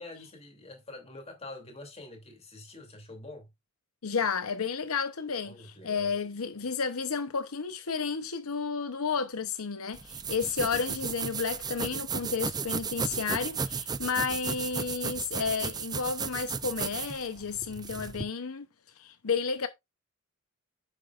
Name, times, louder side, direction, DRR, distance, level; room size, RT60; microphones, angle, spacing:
voice 1, 0.0-3.5 5.4-6.1, left 2 dB, 30° left, 3.0 m, -46 dB
voice 2, 4.0-18.7 19.0-19.7, left 5 dB, 80° left, 0.8 m, -32 dB
sound 1, 9.9-18.2, right 5 dB, 20° right, 0.5 m, -34 dB
9.7 x 7.6 x 2.5 m
head